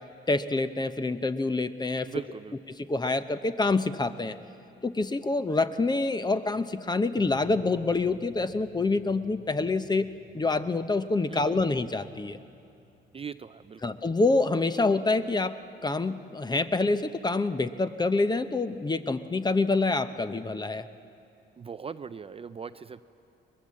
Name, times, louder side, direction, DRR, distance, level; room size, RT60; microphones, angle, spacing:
voice 1, 0.3-2.1 2.9-4.4 4.8-10.1 10.3-12.4 13.8-15.6 15.8-20.9, left 3 dB, 20° left, 12 dB, 0.8 m, -26 dB
voice 2, 2.0-2.6 11.3-11.6 13.1-14.0 21.6-23.0, right 6 dB, 30° right, 12 dB, 0.4 m, -40 dB
sound 1, 7.1-15.7, left 3 dB, 70° left, 5.5 m, -55 dB
21.5 x 20.0 x 7.6 m, 2.5 s
cardioid pair, 90°, 20 cm